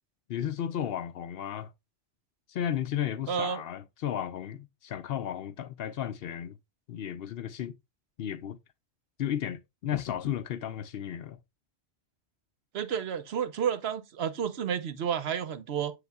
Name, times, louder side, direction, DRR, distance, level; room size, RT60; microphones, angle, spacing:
voice 1, 0.3-1.7 2.5-6.6 6.9-7.8 8.2-8.6 9.2-11.4, left 10 dB, 65° left, 0.7 m, -34 dB
voice 2, 3.3-3.6 12.7-15.9, right 8 dB, 70° right, 0.9 m, -31 dB
8.0 x 6.5 x 2.2 m
omnidirectional pair, 1.2 m